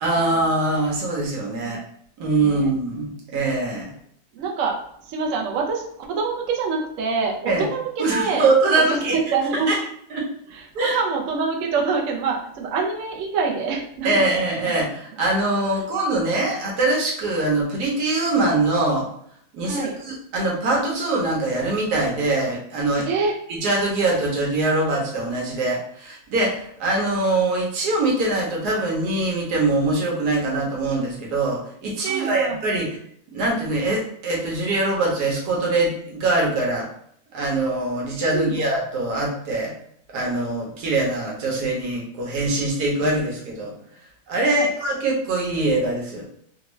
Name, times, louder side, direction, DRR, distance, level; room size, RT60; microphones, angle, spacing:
voice 1, 0.0-1.8 2.2-3.9 7.5-7.6 8.0-9.2 9.7-9.8 10.1-10.3 10.7-11.0 14.0-19.1 19.5-23.1 23.5-33.0 33.3-36.9 37.3-39.7 40.1-43.7 44.3-46.2, right 2 dB, 60° right, -3 dB, 1.3 m, -23 dB
voice 2, 1.5-1.8 2.4-2.7 4.3-4.8 5.0-8.5 8.8-9.8 10.5-14.3 15.7-15.9 19.6-20.0 23.0-23.4 32.1-32.6 38.3-38.6 44.4-44.7, right 4 dB, 85° right, 0 dB, 0.6 m, -26 dB
3.5 x 2.3 x 3.0 m, 0.67 s
omnidirectional pair, 2.1 m